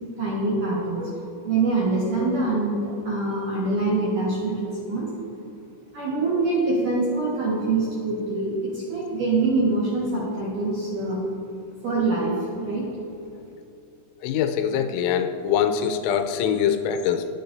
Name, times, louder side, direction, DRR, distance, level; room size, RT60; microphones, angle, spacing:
voice 1, 0.2-5.2 5.9-11.2 11.8-12.9, right 3 dB, 60° right, -6 dB, 2.3 m, -25 dB
voice 2, 14.2-17.3, left 8 dB, 85° left, 7 dB, 3.3 m, -23 dB
22.0 x 9.0 x 2.7 m, 2.7 s
omnidirectional pair, 6.0 m